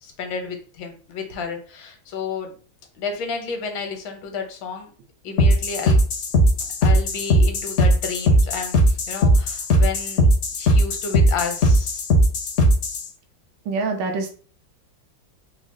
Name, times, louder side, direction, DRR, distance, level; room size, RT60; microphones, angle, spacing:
voice 1, 0.0-2.5 3.0-4.9 5.2-6.0 6.8-8.8 9.1-10.3 10.6-12.1, left 5 dB, 80° left, 5 dB, 1.5 m, -31 dB
sound 1, 5.4-13.1, equal, 65° left, 0.7 m, -18 dB
voice 2, 13.7-14.3, right 3 dB, 75° right, 4 dB, 1.4 m, -25 dB
4.1 x 2.1 x 3.5 m, 0.41 s
omnidirectional pair, 2.0 m